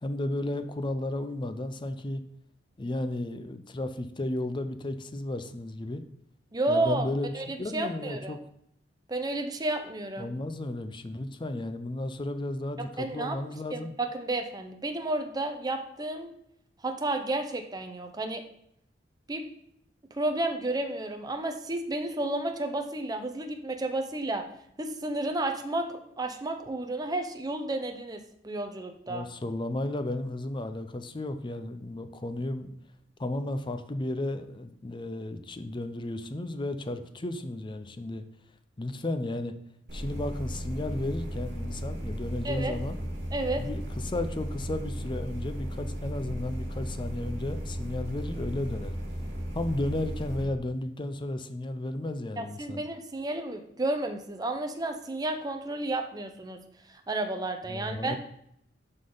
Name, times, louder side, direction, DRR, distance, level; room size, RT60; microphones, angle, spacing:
voice 1, 0.0-2.2 2.8-6.0 6.7-7.3 7.6-8.4 10.2-13.9 29.1-32.7 33.2-38.2 38.8-39.6 39.9-43.0 43.6-49.0 49.5-52.8 57.7-58.2, left 1 dB, 25° left, 10 dB, 0.5 m, -33 dB
voice 2, 6.5-7.1 7.3-8.4 9.1-10.3 13.0-13.4 13.7-16.3 16.8-18.4 19.3-19.4 20.1-24.4 24.8-25.9 26.2-29.3 42.4-42.8 43.3-43.6 52.4-56.6 56.9-58.2, right 2 dB, 20° right, 5 dB, 0.7 m, -31 dB
sound 1, 39.9-50.4, equal, 70° right, 2.4 m, -35 dB
11.5 x 3.9 x 3.9 m, 0.71 s
head